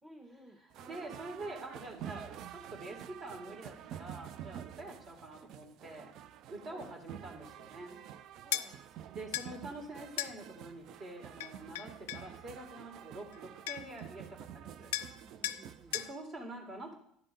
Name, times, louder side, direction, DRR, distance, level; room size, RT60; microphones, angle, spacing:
voice 1, 0.0-0.6 6.7-6.9 8.4-8.8 15.1-16.0, right 1 dB, 15° right, -2 dB, 1.3 m, -55 dB
sound 1, 0.7-16.1, right 10 dB, 60° right, 0.4 m, -49 dB
voice 2, 0.8-6.1 6.5-8.0 9.1-14.3 14.5-14.9 15.9-16.9, right 2 dB, 45° right, 1 dB, 2.1 m, -46 dB
sound 2, 8.5-8.7 9.3-9.5 10.2-10.4 11.4-12.3 13.3-13.4 13.7-14.0 14.9-15.2 15.4-15.6 15.9-16.1, left 13 dB, 80° left, 0.3 m, -36 dB
10.0 x 3.4 x 5.3 m, 0.67 s
hypercardioid pair, 70°, 0 cm